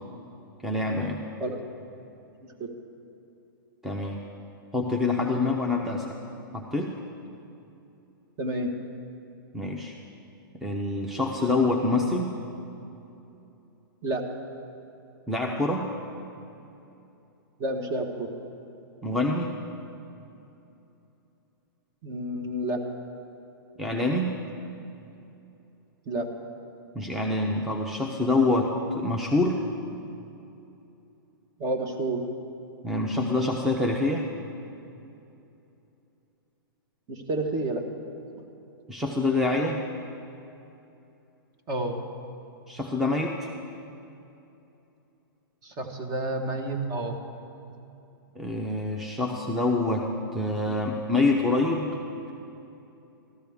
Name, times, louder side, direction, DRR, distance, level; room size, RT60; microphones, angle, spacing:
voice 1, 0.6-1.2 3.8-4.2 4.7-6.2 6.5-6.9 9.5-9.9 10.5-12.3 15.3-15.9 19.0-19.6 23.8-24.4 26.9-29.6 32.8-34.3 38.9-39.8 42.7-43.5 48.4-51.9, left 2 dB, ahead, 0 dB, 0.7 m, -26 dB
voice 2, 8.4-8.7 14.0-14.2 17.6-18.3 22.0-22.8 26.1-26.3 31.6-32.2 37.1-37.8 38.3-38.4 41.7-42.0 45.6-47.2, right 2 dB, 30° right, 4 dB, 1.3 m, -29 dB
13.5 x 13.5 x 3.5 m, 2.8 s
hypercardioid pair, 135°, 12 cm